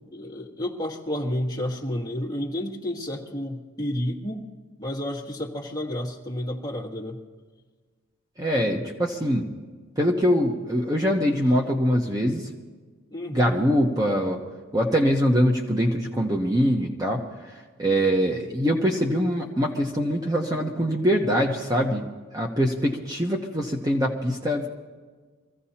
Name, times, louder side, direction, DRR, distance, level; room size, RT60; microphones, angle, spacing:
voice 1, 0.1-4.4 4.8-7.2 11.6-11.7 13.1-13.5, left 1 dB, 15° left, -1 dB, 1.6 m, -30 dB
voice 2, 8.4-9.5 10.0-12.5 13.3-14.4 14.7-17.2 17.8-22.0 22.3-24.7, equal, 15° right, 0 dB, 0.9 m, -23 dB
24.5 x 15.5 x 2.9 m, 1.4 s
head